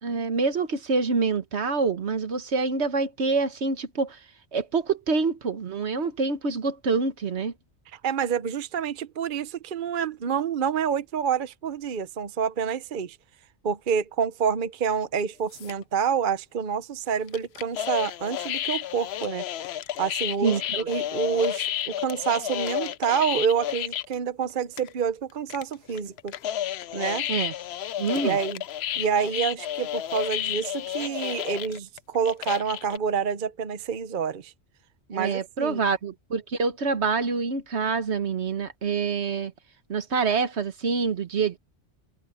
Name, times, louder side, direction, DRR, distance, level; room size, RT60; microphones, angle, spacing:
voice 1, 0.0-4.2 4.5-7.5 20.4-20.9 27.3-27.5 28.0-28.4 35.1-39.5 39.9-41.6, right 4 dB, 70° right, 1.5 m, -26 dB
voice 2, 7.9-13.2 13.6-19.4 20.0-26.4 26.9-27.3 28.2-28.6 29.0-34.5 35.1-35.8, right 7 dB, 50° right, 0.9 m, -28 dB
sound 1, 15.5-15.8 17.3-24.1 24.5-24.6 24.8-25.1 25.5-33.0, left 11 dB, 70° left, 0.8 m, -31 dB
omnidirectional pair, 1.2 m